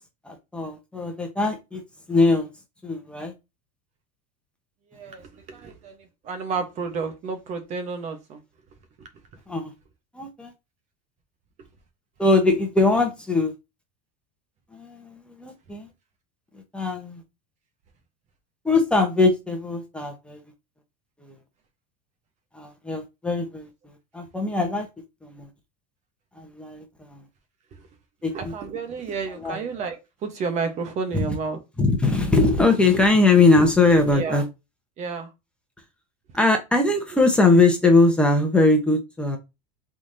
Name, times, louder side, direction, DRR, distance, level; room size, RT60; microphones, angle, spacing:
voice 1, 0.2-1.8 2.1-2.5 2.8-3.3 9.5-9.7 10.1-10.5 12.2-13.5 14.7-15.9 16.5-17.2 18.6-20.4 21.2-21.3 22.5-23.7 24.1-24.9 25.2-25.5 26.4-26.8 27.1-27.2 28.2-28.5 29.4-29.6 31.1-31.4 31.8-34.4 36.3-39.4, left 3 dB, 5° left, 1.0 m, -21 dB
voice 2, 4.9-5.9 6.2-8.4 28.3-31.6 34.1-34.4 35.0-35.3, right 5 dB, 40° right, 1.1 m, -31 dB
4.6 x 3.7 x 2.8 m
supercardioid pair, 145°, 19 cm